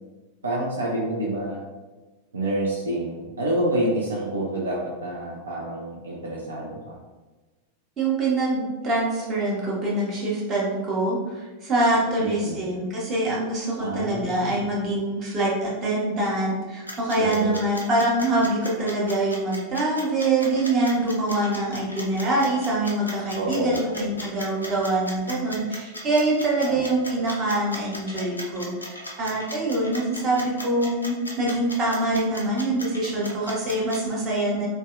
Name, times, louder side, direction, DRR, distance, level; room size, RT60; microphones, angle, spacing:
voice 1, 0.4-1.6 2.3-7.0 12.2-12.6 13.8-14.6 17.2-17.6 23.3-24.0 26.6-26.8, right 1 dB, 70° right, -3 dB, 0.4 m, -28 dB
voice 2, 8.0-34.7, right 2 dB, 30° right, -4 dB, 0.8 m, -24 dB
sound 1, 16.9-34.0, left 1 dB, 80° left, 0.4 m, -37 dB
2.6 x 2.1 x 2.4 m, 1.2 s
figure-of-eight pair, 90°, 0 cm